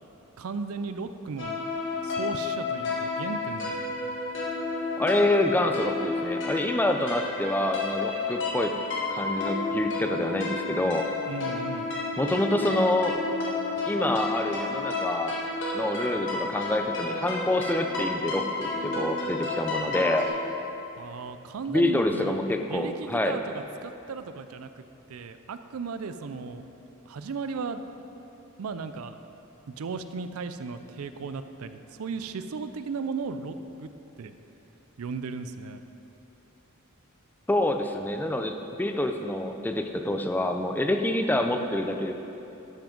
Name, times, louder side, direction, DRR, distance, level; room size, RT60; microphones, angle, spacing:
voice 1, 0.4-1.6 2.0-4.0 11.3-11.9 21.0-22.4 22.7-26.6 27.1-27.8 28.6-29.2 29.7-33.9 34.2-34.3 35.0-35.8, right 4 dB, 75° right, 10 dB, 0.4 m, -36 dB
sound 1, 1.4-20.3, left 3 dB, 60° left, 1.6 m, -31 dB
voice 2, 5.0-8.7 9.1-11.1 12.2-13.2 13.9-15.4 15.7-20.3 21.7-23.4 37.5-42.1, left 1 dB, 10° left, 5 dB, 0.4 m, -27 dB
12.0 x 6.0 x 5.2 m, 3.0 s
head